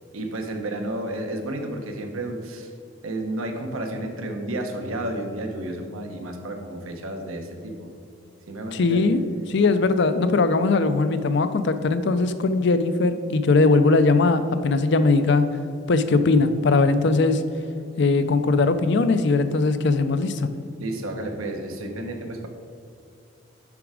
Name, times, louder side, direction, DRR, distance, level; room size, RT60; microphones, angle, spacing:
voice 1, 0.1-2.7 3.0-7.9 8.5-9.1 20.8-22.5, right 1 dB, 80° right, 4 dB, 1.0 m, -31 dB
voice 2, 8.7-9.2 9.5-15.4 15.9-17.4 18.0-20.5, left 3 dB, 55° left, 11 dB, 0.5 m, -20 dB
7.0 x 6.0 x 4.9 m, 2.5 s
head